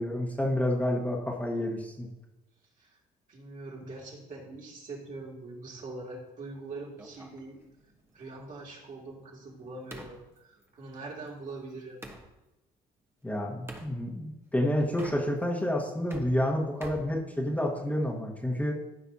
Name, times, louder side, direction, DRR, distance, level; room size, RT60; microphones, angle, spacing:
voice 1, 0.0-2.1 13.2-18.7, left 1 dB, 10° left, -3 dB, 1.5 m, -29 dB
voice 2, 3.3-7.6 8.1-12.0 18.5-18.6, right 3 dB, 50° right, -3 dB, 2.7 m, -43 dB
sound 1, 7.0-12.3 13.7-13.9 14.8-15.6 15.9-17.9, right 1 dB, 15° right, 1.2 m, -48 dB
14.5 x 5.5 x 2.8 m, 0.98 s
cardioid pair, 110°, 17 cm